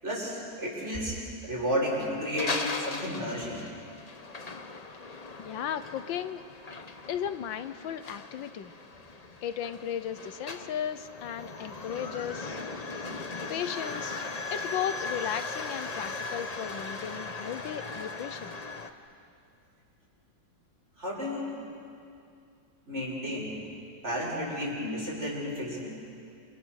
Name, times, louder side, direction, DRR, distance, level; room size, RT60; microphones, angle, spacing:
voice 1, 0.0-3.6 21.0-21.6 22.9-23.6 24.0-25.9, equal, 35° right, -5 dB, 6.9 m, -32 dB
sound 1, 1.9-18.9, left 3 dB, 25° left, 0.9 m, -38 dB
voice 2, 5.1-6.4 7.1-8.7 9.4-12.6 13.5-14.2 14.5-18.5, left 9 dB, 90° left, 11 dB, 1.7 m, -35 dB
28.5 x 27.5 x 6.5 m, 2.5 s
omnidirectional pair, 2.0 m